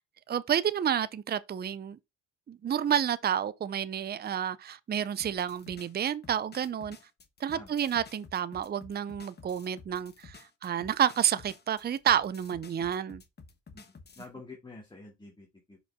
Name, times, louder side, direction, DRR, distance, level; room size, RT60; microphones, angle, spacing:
voice 1, 0.3-2.0 2.5-7.0 7.4-13.2, right 9 dB, 35° right, 0.5 m, -30 dB
sound 1, 5.2-14.3, left 4 dB, 35° left, 1.2 m, -52 dB
voice 2, 13.7-15.8, left 3 dB, 15° left, 2.4 m, -48 dB
5.7 x 5.1 x 3.6 m
cardioid pair, 90°, 30 cm